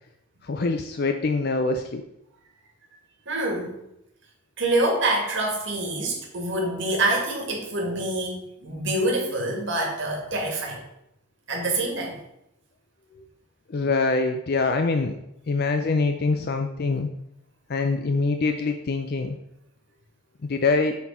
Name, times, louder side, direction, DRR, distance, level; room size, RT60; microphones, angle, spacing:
voice 1, 0.4-2.0 13.7-15.2 15.5-17.1 17.7-19.4 20.4-20.9, left 3 dB, 45° left, 6 dB, 0.4 m, -24 dB
voice 2, 3.3-3.8 4.6-10.8 11.5-12.2, right 2 dB, 55° right, 0 dB, 1.9 m, -26 dB
7.1 x 4.3 x 5.5 m, 0.81 s
head